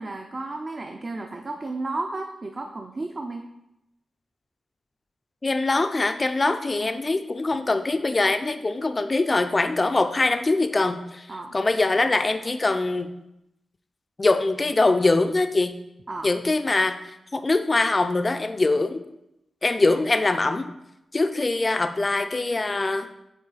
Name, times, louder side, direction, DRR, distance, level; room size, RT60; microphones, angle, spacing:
voice 1, 0.0-3.4 6.8-7.0 11.3-11.6 16.1-16.3 19.9-20.0, right 2 dB, 35° right, 3 dB, 0.5 m, -33 dB
voice 2, 5.4-11.3 11.5-13.1 14.2-15.7 16.2-17.0 17.3-19.0 19.6-20.7 21.1-23.1, left 2 dB, 25° left, 9 dB, 0.4 m, -23 dB
8.6 x 3.0 x 4.0 m, 0.87 s
wide cardioid pair, 130°, 0 cm